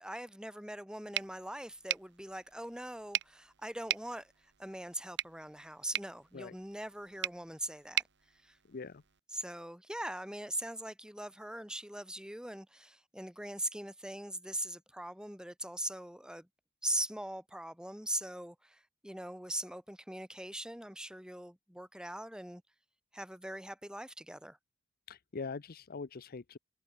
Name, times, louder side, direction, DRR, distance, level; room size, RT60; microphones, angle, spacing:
voice 1, 0.0-8.0 8.3-8.6 9.3-16.5 16.8-22.6 23.1-24.6, right 1 dB, 5° right, 5.0 m, -41 dB
sound 1, 1.1-9.2, right 12 dB, 60° right, 1.4 m, -41 dB
voice 2, 8.7-9.0 25.1-26.6, left 4 dB, 45° left, 0.6 m, -42 dB
head